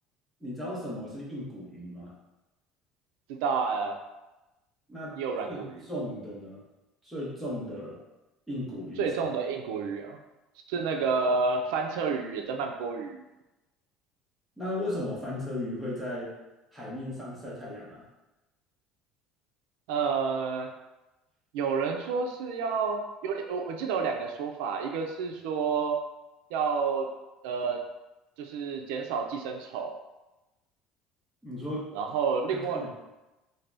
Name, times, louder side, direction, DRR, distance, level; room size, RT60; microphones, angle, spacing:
voice 1, 0.4-2.2 4.9-5.1 5.5-6.6 7.0-8.0 8.5-9.1 14.6-16.3 16.7-18.0 31.4-31.9 32.5-32.9, left 1 dB, ahead, -8 dB, 0.8 m, -36 dB
voice 2, 3.3-4.0 5.2-5.8 9.0-10.2 10.7-13.2 19.9-20.7 21.5-26.0 26.5-27.1 27.4-27.8 28.4-30.0 31.9-32.8, right 5 dB, 90° right, 3 dB, 0.3 m, -29 dB
2.6 x 2.1 x 3.3 m, 1.0 s
cardioid pair, 170°, 0 cm